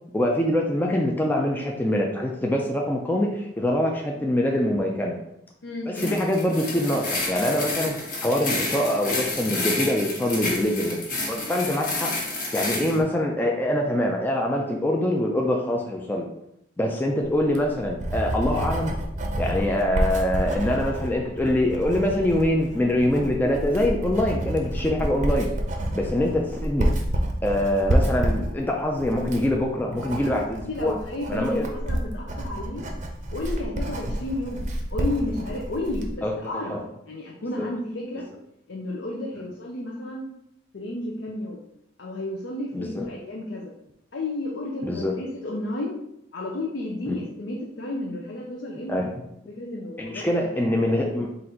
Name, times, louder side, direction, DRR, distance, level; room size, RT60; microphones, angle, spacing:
voice 1, 0.1-5.2 5.9-7.9 8.2-11.0 11.3-12.1 12.5-16.3 16.8-18.9 19.4-25.5 25.9-26.9 27.4-30.9 31.3-31.7 36.2-36.3 36.6-36.8 37.6-37.7 42.7-43.1 44.8-45.2 47.1-47.2 48.9-49.1 50.0-51.3, left 1 dB, 10° left, 0 dB, 0.4 m, -24 dB
voice 2, 5.6-6.1 25.0-25.1 30.3-32.9 33.3-36.8 37.1-38.3 38.7-40.3 40.7-41.6 42.0-43.7 44.1-46.0 46.3-49.1 49.5-50.5, left 1 dB, 70° left, -1 dB, 0.6 m, -32 dB
sound 1, 6.0-13.0, left 2 dB, 45° left, 1.0 m, -30 dB
Writing, 17.4-36.1, right 1 dB, 40° right, 0.6 m, -29 dB
4.0 x 2.5 x 4.3 m, 0.79 s
head